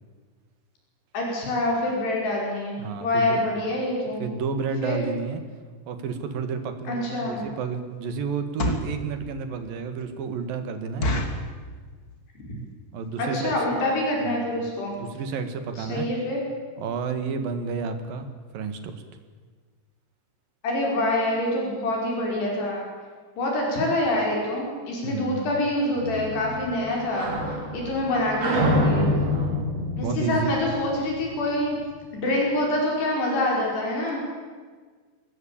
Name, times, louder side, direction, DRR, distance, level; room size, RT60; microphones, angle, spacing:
voice 1, 1.1-4.2 4.8-5.0 6.9-7.4 13.2-14.9 15.8-16.4 20.6-22.8 23.4-27.3 27.7-29.1 30.0-31.8 32.1-34.2, left 1 dB, 70° left, -1 dB, 7.4 m, -26 dB
voice 2, 2.8-3.5 4.2-5.4 5.9-11.1 12.9-13.8 14.2-14.5 15.0-16.1 16.8-18.3 18.5-18.9 25.0-25.6 29.2-30.7, right 5 dB, 60° right, 8 dB, 3.2 m, -31 dB
sound 1, 6.8-6.9 7.4-7.6 8.3-9.0 9.5-9.6 10.0-10.1 10.4-10.5 11.0-11.5 12.1-12.4 12.7-12.8 13.0-13.2 13.8-13.9 14.1-14.3 14.6-14.7 14.9-15.0, left 1 dB, 45° left, 1.2 m, -28 dB
sound 2, 26.0-31.4, equal, 40° right, 3.4 m, -27 dB
23.5 x 19.5 x 8.9 m, 1.5 s
omnidirectional pair, 4.9 m